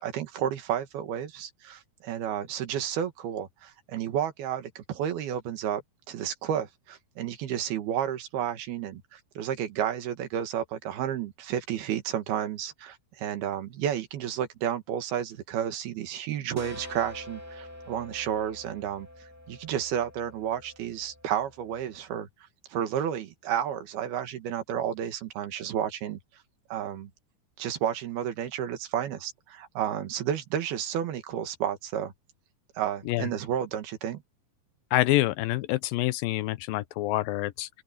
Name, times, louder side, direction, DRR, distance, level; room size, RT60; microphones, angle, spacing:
voice 1, 0.0-5.8 6.1-22.3 22.7-26.2 26.7-27.1 27.6-32.1 32.8-34.2, right 9 dB, 90° right, 3.7 m, -31 dB
sound 1, 16.6-22.0, left 1 dB, 5° right, 2.6 m, -46 dB
voice 2, 34.9-37.7, left 17 dB, 80° left, 2.3 m, -26 dB
open air
omnidirectional pair, 4.3 m